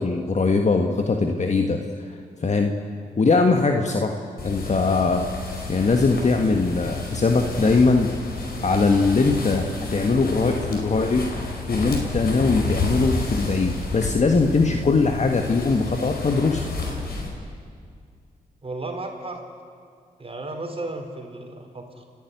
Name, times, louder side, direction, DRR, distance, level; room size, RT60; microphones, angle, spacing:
voice 1, 0.0-2.7 3.2-5.3 5.7-8.1 8.6-11.3 11.7-16.6, left 3 dB, 45° left, 4 dB, 1.6 m, -21 dB
sound 1, 4.4-17.3, left 3 dB, 70° left, 5.0 m, -31 dB
voice 2, 18.6-19.4 20.2-22.0, right 2 dB, 35° right, 4 dB, 4.1 m, -34 dB
30.0 x 11.0 x 9.6 m, 2.2 s
supercardioid pair, 45°, 16 cm